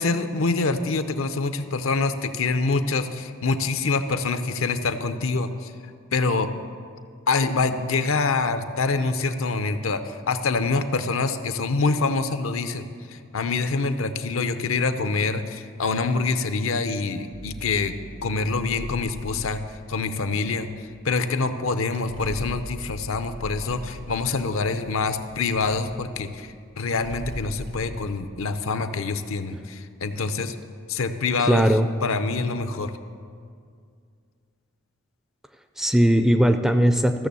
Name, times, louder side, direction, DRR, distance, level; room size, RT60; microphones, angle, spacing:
voice 1, 0.0-5.7 6.1-6.5 7.3-18.0 18.2-19.6 19.9-20.7 21.0-30.6 30.9-31.7 32.0-32.9, left 4 dB, 80° left, 10 dB, 0.7 m, -25 dB
sound 1, 17.3-28.2, right 1 dB, 60° right, 0.8 m, -40 dB
voice 2, 31.4-31.9 35.8-37.3, equal, ahead, 8 dB, 0.3 m, -19 dB
14.5 x 6.9 x 6.8 m, 2.2 s
head